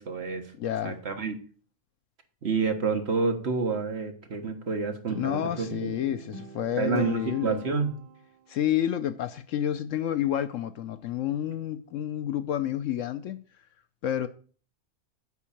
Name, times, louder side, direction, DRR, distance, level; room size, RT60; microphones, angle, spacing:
voice 1, 0.0-0.5 0.8-1.3 2.4-5.9 6.8-7.9, right 4 dB, 50° right, 1.5 m, -29 dB
voice 2, 0.6-1.0 5.2-7.6 8.5-13.4 14.0-14.3, left 11 dB, 70° left, 0.9 m, -29 dB
Guitar, 5.1-8.4, right 6 dB, 90° right, 1.3 m, -44 dB
8.3 x 5.5 x 7.2 m
omnidirectional pair, 1.5 m